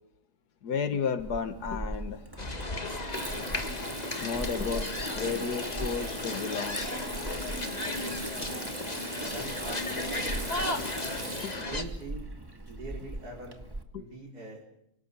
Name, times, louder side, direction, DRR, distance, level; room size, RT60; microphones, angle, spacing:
voice 1, 0.6-2.3 4.2-6.8 11.4-11.5 13.9-14.0, left 6 dB, 90° left, 10 dB, 1.9 m, -33 dB
Water tap faucet / Sink (filling or washing), 1.2-13.8, right 1 dB, 15° right, 1.6 m, -38 dB
sound 1, 2.4-11.8, left 2 dB, 25° left, 1.8 m, -35 dB
voice 2, 9.2-10.8 11.5-12.2 12.7-13.6 14.0-14.6, right 2 dB, 80° right, -2 dB, 5.1 m, -43 dB
27.0 x 18.5 x 8.3 m, 0.79 s
omnidirectional pair, 1.6 m